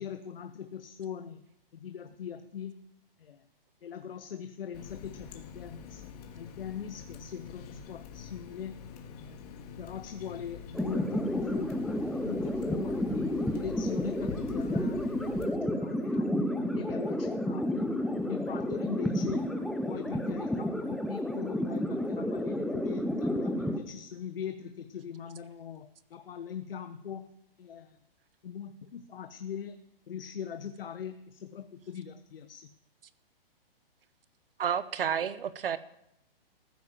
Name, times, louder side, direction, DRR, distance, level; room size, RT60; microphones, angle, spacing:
voice 1, 0.0-1.4 1.7-2.8 3.2-3.4 3.8-6.1 6.4-8.8 9.2-9.3 9.8-11.8 12.1-17.8 18.3-19.5 19.8-27.3 27.6-28.0 28.4-29.8 30.1-32.7, left 8 dB, 70° left, 9 dB, 1.0 m, -41 dB
Water tap faucet, 4.7-15.4, left 6 dB, 40° left, 2.2 m, -45 dB
sound 1, 10.7-23.8, left 1 dB, ahead, 0.6 m, -31 dB
voice 2, 34.6-35.8, right 8 dB, 70° right, 16 dB, 0.9 m, -30 dB
14.5 x 10.0 x 7.3 m, 0.79 s
hypercardioid pair, 140°, 29 cm